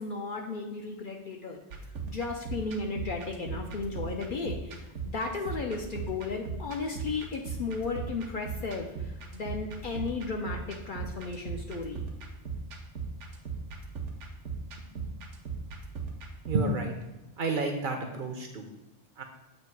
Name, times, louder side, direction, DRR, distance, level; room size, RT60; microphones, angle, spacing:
voice 1, 0.0-1.6 2.1-12.0, left 4 dB, 60° left, 1 dB, 0.6 m, -35 dB
sound 1, 1.7-16.5, right 4 dB, 80° right, 1.1 m, -39 dB
voice 2, 16.5-17.0 17.4-18.7 19.2-19.3, right 2 dB, 55° right, 3 dB, 0.6 m, -30 dB
7.5 x 2.8 x 4.5 m, 1.1 s
omnidirectional pair, 1.2 m